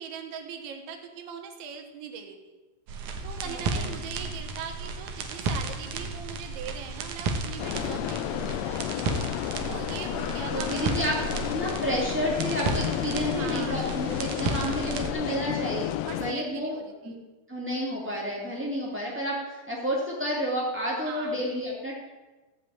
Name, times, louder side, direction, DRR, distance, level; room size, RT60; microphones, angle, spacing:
voice 1, 0.0-2.5 3.2-8.9 9.7-11.3 13.4-14.1 14.4-15.0 16.1-17.2 21.0-21.5, right 7 dB, 90° right, 4 dB, 3.8 m, -41 dB
sound 1, 2.9-15.1, right 3 dB, 65° right, 2.0 m, -33 dB
voice 2, 3.4-3.9 10.5-11.1 11.5-15.9 16.2-16.8 17.0-17.1 17.5-21.9, equal, 10° right, -5 dB, 0.7 m, -30 dB
sound 2, 7.6-16.3, left 13 dB, 80° left, 2.5 m, -32 dB
16.0 x 5.6 x 8.7 m, 1.2 s
omnidirectional pair, 5.1 m